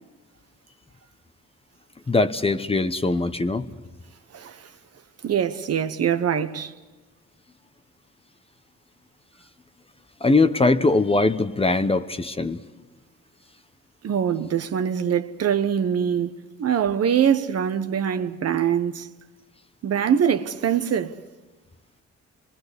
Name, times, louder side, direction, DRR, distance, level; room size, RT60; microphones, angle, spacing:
voice 1, 2.1-3.7 10.2-12.6, left 3 dB, 20° left, 0.9 m, -21 dB
voice 2, 4.3-4.7 5.2-6.7 14.0-16.3 16.6-19.1 19.8-21.2, right 8 dB, 55° right, 1.1 m, -23 dB
26.5 x 21.0 x 8.2 m
cardioid pair, 90°, 30 cm